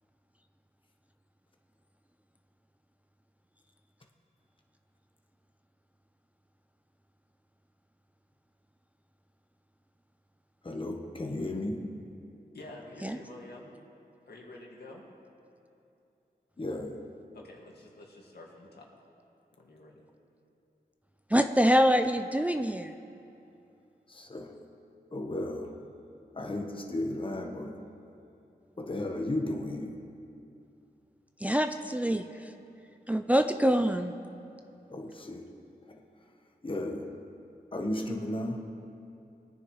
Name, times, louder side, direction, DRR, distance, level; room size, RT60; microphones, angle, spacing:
voice 1, 10.6-11.9 16.6-17.1 24.1-24.6 25.1-25.8 26.3-27.8 28.8-30.0 34.9-35.6 35.8-36.3 36.6-37.2 37.7-38.7, left 1 dB, 30° left, 2 dB, 1.1 m, -35 dB
voice 2, 12.5-13.7 14.3-15.0 17.3-18.9 19.6-19.9, left 2 dB, 75° left, -2 dB, 2.0 m, -48 dB
voice 3, 21.3-22.9 31.4-32.5 33.1-34.1, equal, 10° right, 7 dB, 0.4 m, -25 dB
20.5 x 9.7 x 3.2 m, 2.7 s
wide cardioid pair, 80°, 17 cm